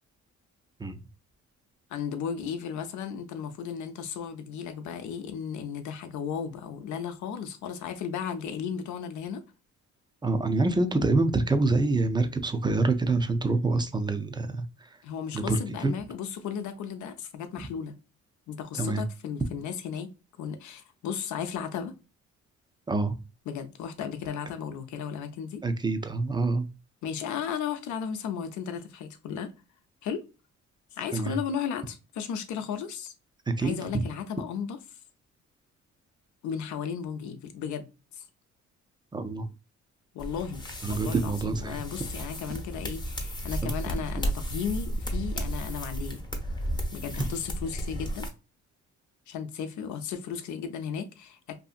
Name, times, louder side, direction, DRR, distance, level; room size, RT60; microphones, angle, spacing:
voice 1, 1.9-9.4 15.0-18.0 18.5-20.1 20.4-22.0 23.5-25.6 27.0-29.5 30.0-30.2 30.9-33.1 33.6-34.8 36.4-37.9 38.1-38.2 40.1-46.2 46.9-48.3 49.3-51.6, left 7 dB, 75° left, 0.6 m, -35 dB
voice 2, 10.2-14.6 15.3-15.9 18.8-19.0 22.9-23.1 25.6-26.7 31.1-31.4 33.6-34.0 39.1-39.4 40.8-41.8 43.6-43.7, right 3 dB, 15° right, 0.4 m, -26 dB
sound 1, 40.2-48.3, equal, 15° left, 0.7 m, -33 dB
2.7 x 2.6 x 2.4 m
cardioid pair, 90°, 30 cm